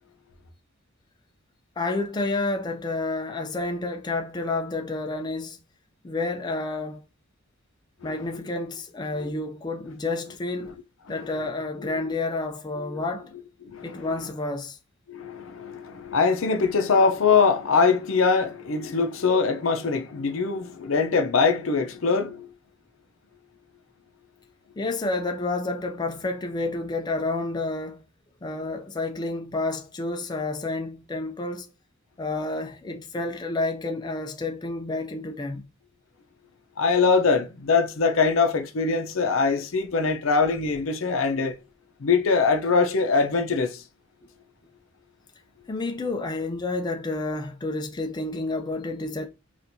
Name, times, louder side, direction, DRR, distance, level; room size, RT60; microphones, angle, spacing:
voice 1, 1.8-5.6 6.0-7.0 8.0-10.7 11.1-13.3 13.8-14.8 24.8-28.0 28.4-31.7 32.2-35.6 45.7-49.3, left 2 dB, 20° left, 0.4 m, -30 dB
voice 2, 13.6-14.1 15.1-22.5 36.8-41.6 42.0-43.8, left 4 dB, 75° left, 0.6 m, -23 dB
4.3 x 2.4 x 2.6 m
head